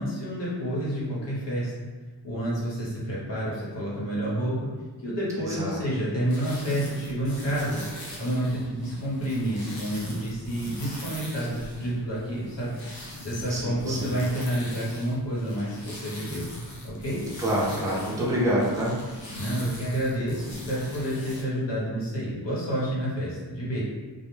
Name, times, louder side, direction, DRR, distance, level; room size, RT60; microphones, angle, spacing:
voice 1, 0.0-1.9 2.2-4.7 5.0-7.8 8.2-12.7 13.2-16.5 16.8-17.2 19.3-23.8, right 1 dB, 80° left, -7 dB, 1.0 m, -29 dB
voice 2, 5.4-5.9 13.5-14.2 17.4-18.9, equal, 10° right, -6 dB, 0.5 m, -27 dB
sound 1, 6.3-21.4, left 1 dB, 55° left, 0.6 m, -41 dB
2.2 x 2.1 x 3.1 m, 1.3 s
wide cardioid pair, 115°, 42 cm